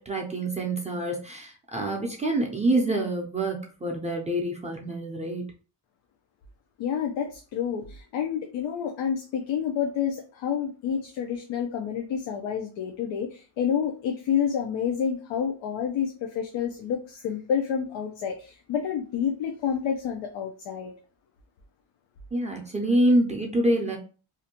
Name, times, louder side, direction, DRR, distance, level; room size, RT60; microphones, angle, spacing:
voice 1, 0.0-5.5 22.3-24.0, right 1 dB, 15° right, -1 dB, 0.4 m, -26 dB
voice 2, 6.8-20.9, left 8 dB, 90° left, 2 dB, 0.5 m, -29 dB
2.6 x 2.1 x 2.7 m, 0.37 s
cardioid pair, 135°, 44 cm